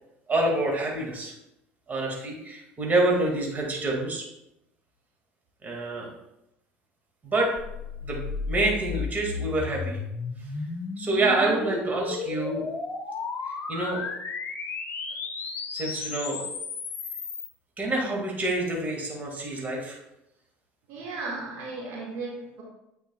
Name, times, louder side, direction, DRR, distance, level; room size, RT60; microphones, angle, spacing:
voice 1, 0.3-1.3 1.9-4.2 5.6-6.1 7.2-7.5 8.0-10.0 11.0-12.7 13.5-14.1 15.7-16.6 17.8-20.0, right 2 dB, 30° right, -1 dB, 2.0 m, -27 dB
sound 1, 7.6-17.5, left 4 dB, 40° left, 1.0 m, -34 dB
voice 2, 20.9-22.6, right 3 dB, 65° right, -3 dB, 1.9 m, -35 dB
8.9 x 4.8 x 2.3 m, 0.85 s
hypercardioid pair, 75°, 5 cm